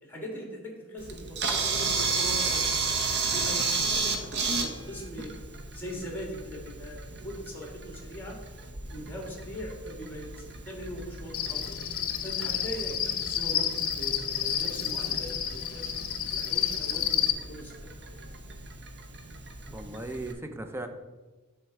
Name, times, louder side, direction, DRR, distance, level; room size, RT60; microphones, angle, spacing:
voice 1, 0.0-2.7 3.2-5.3 5.7-8.4 8.9-11.8 12.2-13.7 14.0-15.9 16.3-17.7, equal, 10° left, -1 dB, 1.8 m, -40 dB
Camera, 1.0-20.3, right 4 dB, 50° right, 0.8 m, -34 dB
Cricket, 11.3-17.3, left 10 dB, 65° left, 0.7 m, -30 dB
voice 2, 19.7-20.9, right 2 dB, 10° right, 7 dB, 0.5 m, -37 dB
10.0 x 3.6 x 4.6 m, 1.2 s
head